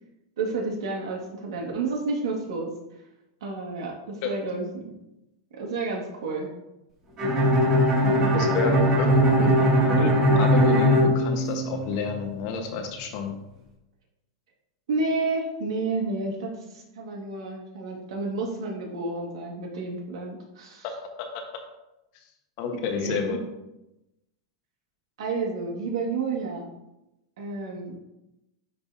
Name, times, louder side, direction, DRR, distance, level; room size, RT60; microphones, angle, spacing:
voice 1, 0.4-2.7 3.4-4.8 5.5-6.5 7.9-8.4 14.9-20.8 22.7-23.4 25.2-26.7 27.4-28.0, right 3 dB, 75° right, -1 dB, 1.7 m, -30 dB
Bowed string instrument, 7.2-12.0, equal, 30° right, 2.1 m, -20 dB
voice 2, 8.3-9.1 9.4-9.5 9.9-13.3 20.8-20.9 21.3-21.4 22.6-23.4, left 5 dB, 50° left, 5 dB, 1.1 m, -29 dB
10.5 x 3.5 x 2.7 m, 0.93 s
hypercardioid pair, 130°, 3 cm